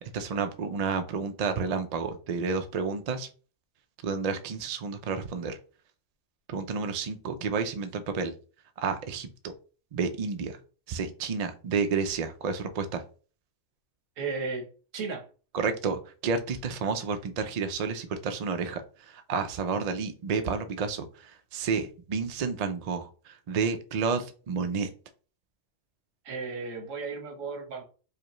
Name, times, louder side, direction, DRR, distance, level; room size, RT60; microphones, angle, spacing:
voice 1, 0.0-3.3 4.0-5.6 6.5-8.3 8.8-9.3 9.9-10.6 10.9-13.0 15.5-24.9, right 5 dB, 65° right, 8 dB, 0.4 m, -30 dB
voice 2, 14.2-14.7 14.9-15.3 26.2-27.8, right 4 dB, 90° right, 3 dB, 1.3 m, -34 dB
4.9 x 2.2 x 3.0 m, 0.38 s
omnidirectional pair, 1.3 m